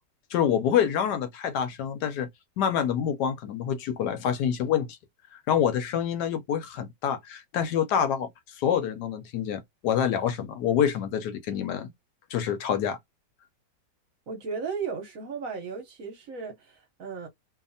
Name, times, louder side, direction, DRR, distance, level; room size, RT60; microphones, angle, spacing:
voice 1, 0.3-2.3 2.6-4.9 5.3-11.9 12.3-13.0, left 8 dB, 75° left, 1.1 m, -27 dB
voice 2, 14.3-17.3, right 5 dB, 60° right, 1.0 m, -35 dB
2.7 x 2.4 x 2.6 m
omnidirectional pair, 1.9 m